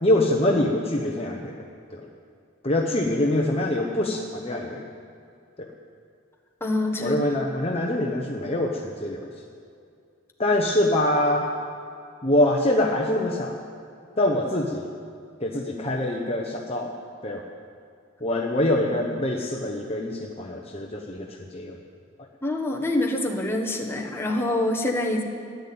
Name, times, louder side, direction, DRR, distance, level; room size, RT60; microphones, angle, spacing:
voice 1, 0.0-1.6 1.9-2.0 2.6-4.8 5.6-5.7 7.0-9.3 10.4-11.5 12.2-13.6 14.2-14.9 15.4-16.9 17.2-17.4 18.2-21.3 21.5-21.8, left 1 dB, 30° left, 0 dB, 1.0 m, -24 dB
voice 2, 6.6-7.2 22.4-25.2, left 1 dB, 10° left, 0 dB, 1.4 m, -25 dB
14.0 x 10.5 x 8.7 m, 2.4 s
head